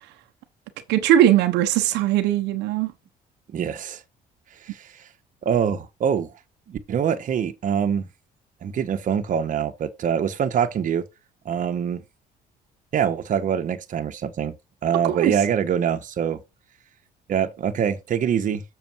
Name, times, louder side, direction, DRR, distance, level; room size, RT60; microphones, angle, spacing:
voice 1, 0.9-2.9 15.0-15.3, right 12 dB, 85° right, 1.1 m, -19 dB
voice 2, 3.5-4.0 4.6-5.1 5.4-6.3 6.7-8.1 8.6-11.0 11.4-12.0 12.9-14.5 14.8-16.4 17.3-18.6, right 8 dB, 50° right, 1.4 m, -24 dB
7.1 x 6.9 x 4.6 m
cardioid pair, 110°, 17 cm